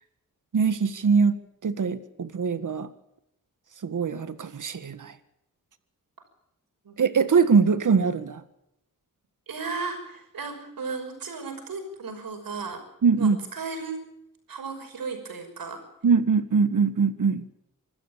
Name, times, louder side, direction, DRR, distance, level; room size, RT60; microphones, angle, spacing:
voice 1, 0.5-2.9 3.8-5.1 7.0-8.4 13.0-13.4 16.0-17.4, right 5 dB, 65° right, 1.7 m, -22 dB
voice 2, 9.5-12.8 13.2-14.0 14.5-15.8, right 4 dB, 80° right, 5.9 m, -35 dB
26.0 x 13.5 x 8.7 m
wide cardioid pair, 90°, 34 cm